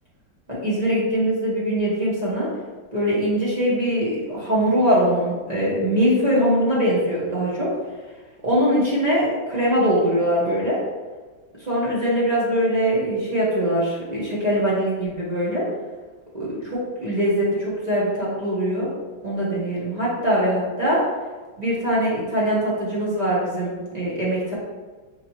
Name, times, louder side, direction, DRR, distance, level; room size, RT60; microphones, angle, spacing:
voice 1, 0.5-2.5 2.9-7.7 8.4-10.8 11.6-15.7 16.3-18.9 19.2-21.0 21.6-24.5, equal, 45° right, -7 dB, 0.5 m, -22 dB
5.0 x 3.2 x 3.0 m, 1.3 s
omnidirectional pair, 2.2 m